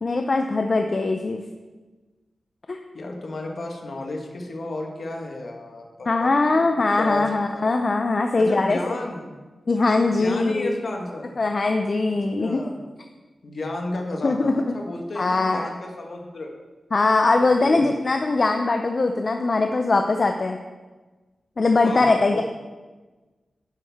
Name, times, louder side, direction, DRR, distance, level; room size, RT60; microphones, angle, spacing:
voice 1, 0.0-1.4 2.7-2.8 6.1-8.8 9.7-10.7 11.4-12.6 14.2-14.7 15.2-15.7 16.9-20.6 21.6-22.4, left 3 dB, 45° left, 5 dB, 0.4 m, -21 dB
voice 2, 2.9-6.7 7.0-7.6 8.4-9.3 10.2-11.3 12.4-12.8 13.4-16.5 17.6-18.0 21.8-22.4, left 2 dB, 65° left, 1 dB, 1.3 m, -32 dB
9.8 x 6.1 x 3.5 m, 1.3 s
wide cardioid pair, 95°, 0 cm